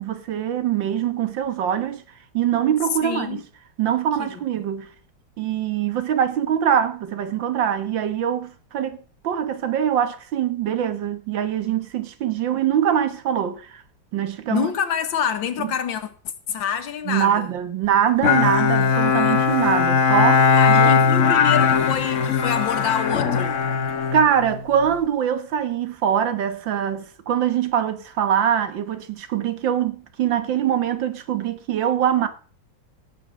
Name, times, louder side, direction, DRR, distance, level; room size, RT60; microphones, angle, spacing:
voice 1, 0.0-2.0 2.3-3.4 3.8-4.9 5.4-9.0 9.2-13.8 14.1-14.7 15.6-15.7 17.1-20.9 24.1-32.3, right 9 dB, 75° right, 1.9 m, -23 dB
voice 2, 3.0-3.4 4.2-4.3 4.6-4.7 14.5-16.1 16.5-17.5 20.5-23.7, left 8 dB, 80° left, 2.0 m, -27 dB
Bowed string instrument, 18.2-24.9, left 6 dB, 50° left, 1.2 m, -19 dB
17.0 x 6.7 x 6.3 m
omnidirectional pair, 2.1 m